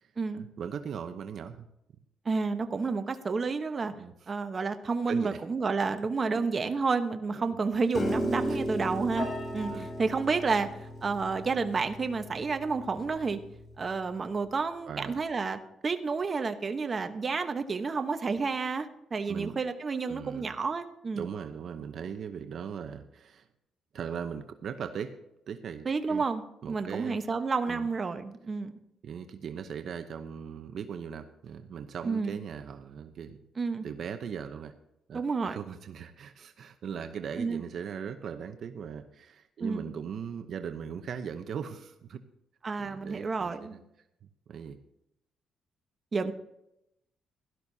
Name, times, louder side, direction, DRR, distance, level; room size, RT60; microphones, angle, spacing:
voice 1, 0.0-1.7 3.9-4.3 5.1-5.4 7.3-7.6 8.5-8.6 9.7-9.9 14.9-15.2 19.3-19.6 20.0-20.5 21.1-23.5 23.9-25.1 25.5-26.2 26.6-27.2 27.7-27.9 29.0-33.4 33.8-34.7 35.1-42.2 42.8-43.8 44.5-44.8, right 7 dB, 60° right, 7 dB, 0.8 m, -39 dB
voice 2, 2.2-3.9 4.3-9.3 9.5-13.4 13.8-21.2 25.8-28.7 32.0-32.4 33.6-33.8 35.1-35.6 37.4-37.6 39.6-39.8 42.6-43.8 46.1-46.3, right 4 dB, 35° right, 8 dB, 1.1 m, -30 dB
Piano, 7.9-14.2, equal, 45° left, 3.1 m, -36 dB
16.5 x 12.5 x 2.8 m, 0.82 s
cardioid pair, 90°, 0 cm